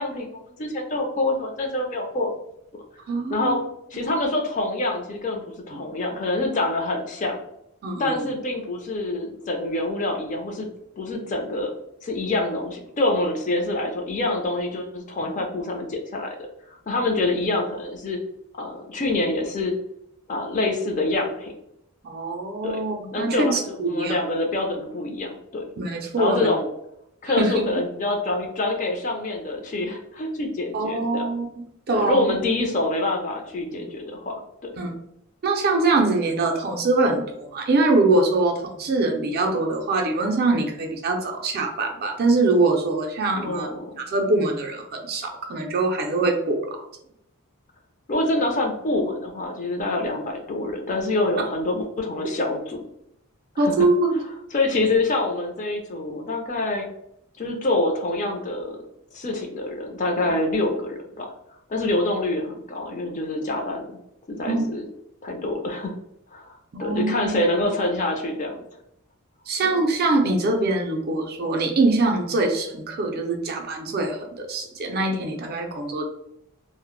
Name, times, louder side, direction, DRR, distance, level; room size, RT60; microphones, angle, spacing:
voice 1, 0.0-2.3 3.3-3.6 3.9-7.4 8.0-10.7 11.0-11.7 12.0-16.4 16.7-18.2 18.6-19.7 20.3-21.5 22.6-22.8 23.1-25.6 26.2-26.7 27.2-31.3 31.9-34.7 43.4-43.9 48.1-52.8 53.6-53.7 54.5-56.9 57.4-58.8 59.1-61.3 61.7-63.9 64.3-64.8 65.2-65.9 66.3-66.5 66.8-68.6 69.7-69.8, left 2 dB, 35° left, 2 dB, 0.4 m, -26 dB
voice 2, 3.1-3.6 5.7-5.8 7.8-8.3 22.0-24.2 25.8-26.5 27.3-27.6 30.7-32.3 33.7-33.9 34.8-34.9 35.4-43.7 44.0-46.8 53.6-54.2 64.5-64.7 66.7-67.4 69.5-76.1, right 2 dB, 45° right, 3 dB, 0.4 m, -23 dB
2.0 x 2.0 x 2.9 m, 0.78 s
head